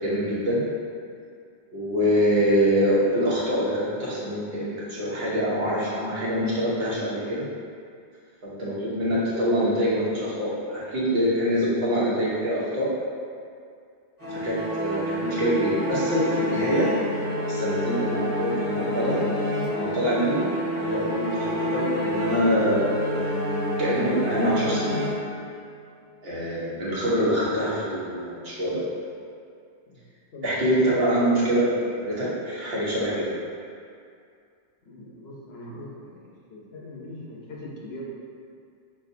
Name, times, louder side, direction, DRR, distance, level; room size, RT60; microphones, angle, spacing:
voice 1, 0.0-0.6 1.7-7.5 8.4-12.9 14.3-16.9 17.5-19.2 19.7-22.8 23.8-25.0 26.2-28.9 30.4-33.4, equal, 65° right, -8 dB, 1.2 m, -25 dB
sound 1, 14.2-25.7, left 1 dB, 15° right, 1.3 m, -28 dB
voice 2, 34.8-36.2 36.5-38.0, left 1 dB, 75° left, -4 dB, 1.0 m, -41 dB
6.0 x 2.4 x 2.6 m, 2.3 s
omnidirectional pair, 1.1 m